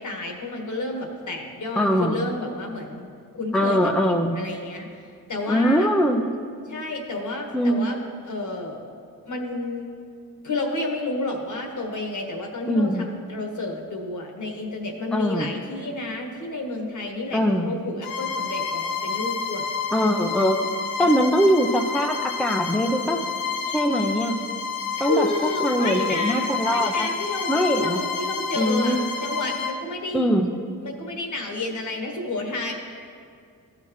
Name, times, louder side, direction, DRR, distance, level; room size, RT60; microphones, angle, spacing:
voice 1, 0.0-3.1 3.3-3.9 4.3-4.9 5.3-5.9 6.7-8.8 9.2-9.9 10.4-19.7 21.0-21.3 25.0-30.3 30.8-32.7, left 2 dB, 55° left, 2 dB, 1.5 m, -30 dB
voice 2, 1.8-2.2 3.5-4.4 5.5-6.3 7.5-7.9 12.7-13.1 15.1-15.5 17.3-17.7 19.9-20.7 21.0-23.2 23.7-24.4 25.0-25.3 25.6-27.1 27.5-28.0 28.6-29.0 30.1-30.5, equal, ahead, 3 dB, 0.7 m, -22 dB
Bowed string instrument, 18.0-29.8, left 5 dB, 80° left, 0.7 m, -29 dB
14.0 x 5.8 x 3.1 m, 2.3 s
supercardioid pair, 50°, 36 cm